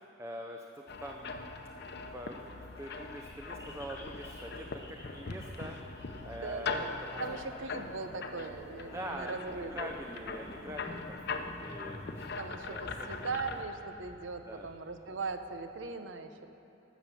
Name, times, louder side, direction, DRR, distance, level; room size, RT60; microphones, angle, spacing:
voice 1, 0.2-1.4 2.1-5.8 6.2-7.2 8.9-12.3 12.7-13.3 14.4-14.7 15.1-15.2 16.4-16.5, right 1 dB, 15° right, 2 dB, 0.5 m, -44 dB
sound 1, 0.9-13.6, left 4 dB, 60° left, 0.7 m, -41 dB
sound 2, 2.0-15.9, equal, 15° left, 1.6 m, -51 dB
voice 2, 6.3-9.7 12.4-16.5, right 4 dB, 85° right, 8 dB, 0.7 m, -40 dB
13.0 x 7.2 x 6.9 m, 2.8 s
head